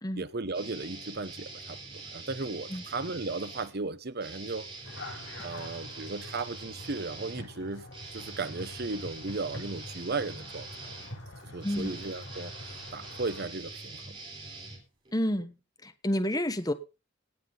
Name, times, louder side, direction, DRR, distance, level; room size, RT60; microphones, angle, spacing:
voice 1, 0.1-4.7 5.4-7.9 8.1-10.7 11.5-12.5 12.9-14.0, right 3 dB, 55° right, 1.0 m, -35 dB
sound 1, 0.5-3.7 4.2-15.3, right 3 dB, 25° right, 4.2 m, -44 dB
sound 2, 4.8-13.4, left 1 dB, 75° left, 7.3 m, -45 dB
voice 2, 15.1-15.6 15.8-16.7, equal, 20° left, 1.2 m, -29 dB
17.5 x 7.5 x 3.9 m
head